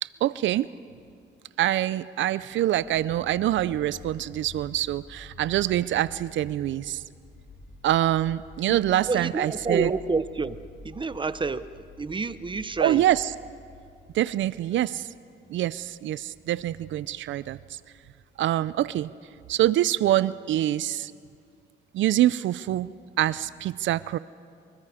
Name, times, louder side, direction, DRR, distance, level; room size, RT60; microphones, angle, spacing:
voice 1, 0.0-0.7 1.6-7.0 7.8-9.9 12.8-13.3 14.1-15.1 15.5-17.8 18.4-19.1 19.5-21.1 21.9-24.2, right 13 dB, 70° right, 18 dB, 0.5 m, -25 dB
sound 1, 2.7-19.7, left 3 dB, 50° left, 2.8 m, -50 dB
voice 2, 8.7-10.6 10.8-13.0, right 4 dB, 25° right, 14 dB, 0.7 m, -29 dB
25.5 x 23.5 x 5.0 m, 2.3 s
cardioid pair, 90°, 20 cm